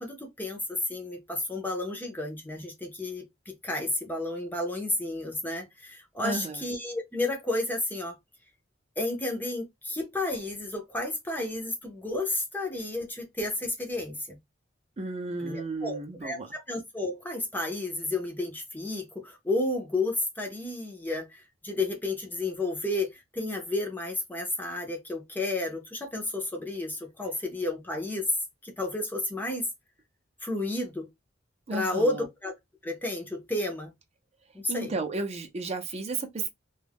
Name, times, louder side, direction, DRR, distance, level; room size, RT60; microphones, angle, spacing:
voice 1, 0.0-8.2 9.0-14.4 15.4-28.2 28.6-29.7 30.4-31.1 31.7-32.5 32.8-33.9 34.5-34.9, left 2 dB, 10° left, 0.5 m, -32 dB
voice 2, 6.2-6.6 15.0-16.5 31.7-32.3 34.7-36.5, right 3 dB, 35° right, 0.5 m, -33 dB
2.3 x 2.0 x 3.3 m
head